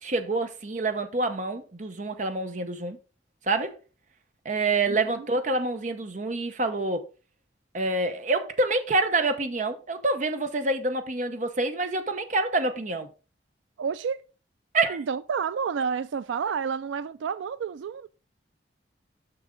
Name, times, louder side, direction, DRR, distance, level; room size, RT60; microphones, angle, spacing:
voice 1, 0.0-3.0 3.5-3.8 4.4-7.0 7.7-13.1 14.7-15.0, right 2 dB, 40° right, 0.8 m, -27 dB
voice 2, 4.9-5.3 13.8-14.2 14.9-18.1, right 6 dB, 80° right, 0.3 m, -30 dB
6.9 x 6.3 x 3.8 m
head